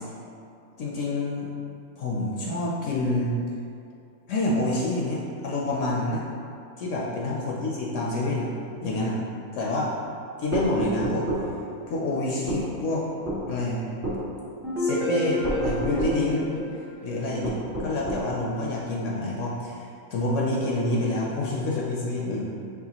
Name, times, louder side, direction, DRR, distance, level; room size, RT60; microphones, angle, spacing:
voice 1, 0.8-1.5 2.0-3.3 4.3-6.2 6.8-8.5 8.8-9.2 9.5-9.9 10.4-11.5 11.9-13.0 13.5-13.8 14.8-16.5 17.0-22.5, left 2 dB, 70° left, -3 dB, 0.9 m, -27 dB
sound 1, 10.5-11.5 12.5-12.7 13.3-13.4 14.0-14.2 15.4-16.2 17.4-18.3, right 1 dB, 45° right, 1.3 m, -28 dB
sound 2, 14.6-17.6, equal, ahead, 0.7 m, -30 dB
4.7 x 3.3 x 2.8 m, 2.6 s
omnidirectional pair, 1.4 m